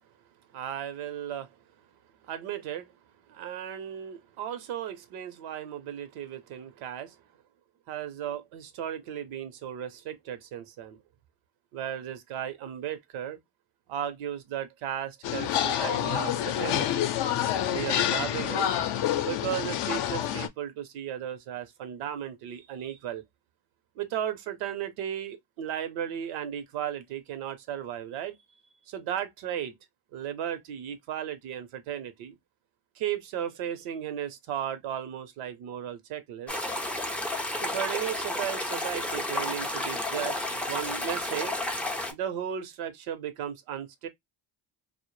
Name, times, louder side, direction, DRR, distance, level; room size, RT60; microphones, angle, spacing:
voice 1, 0.5-1.5 2.2-2.9 3.3-7.2 7.9-11.0 11.7-13.4 13.9-17.1 17.6-18.7 19.2-23.2 24.0-28.4 28.9-29.8 30.1-32.4 33.0-36.5 37.6-41.6 42.1-44.1, right 10 dB, 75° right, 0.7 m, -35 dB
sound 1, 15.2-20.5, left 10 dB, 60° left, 0.5 m, -28 dB
sound 2, 36.5-42.1, left 1 dB, 5° left, 0.3 m, -31 dB
2.1 x 2.0 x 3.0 m
supercardioid pair, 75°, 50 cm